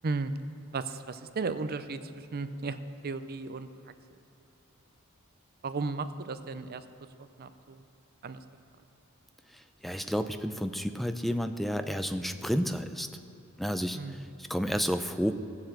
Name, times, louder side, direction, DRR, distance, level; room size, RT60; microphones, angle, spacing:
voice 1, 0.7-2.8 3.0-3.9 5.6-6.8 7.4-7.8 8.2-8.4 13.9-14.2, right 4 dB, 45° right, 11 dB, 0.5 m, -35 dB
voice 2, 9.5-13.1 13.6-14.0 14.4-15.3, equal, ahead, 8 dB, 0.5 m, -31 dB
16.5 x 7.3 x 7.7 m, 3.0 s
head